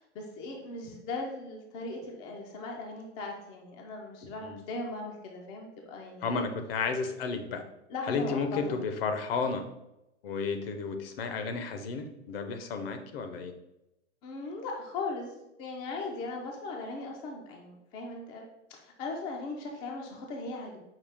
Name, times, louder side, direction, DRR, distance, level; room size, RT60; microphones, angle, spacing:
voice 1, 0.0-6.5 7.9-8.6 14.2-15.3 15.6-18.4 18.7-20.8, left 3 dB, 20° left, 0 dB, 0.4 m, -38 dB
voice 2, 6.2-7.6 8.1-9.6 10.2-13.5, left 4 dB, 55° left, 7 dB, 0.7 m, -32 dB
5.6 x 2.3 x 3.4 m, 0.91 s
hypercardioid pair, 125°, 35 cm